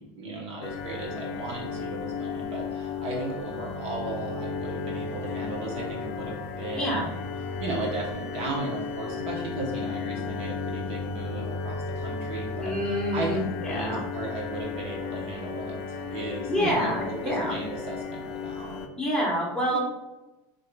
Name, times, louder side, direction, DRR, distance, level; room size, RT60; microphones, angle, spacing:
voice 1, 0.0-7.0 7.6-18.7 19.7-19.8, right 2 dB, 40° right, -2 dB, 0.8 m, -35 dB
sound 1, 0.6-18.9, left 4 dB, 45° left, 0.5 m, -34 dB
voice 2, 6.8-7.1 12.6-14.0 16.5-17.5 19.0-19.8, equal, 5° left, -6 dB, 1.0 m, -27 dB
5.4 x 2.6 x 2.2 m, 1.0 s
supercardioid pair, 155°, 16 cm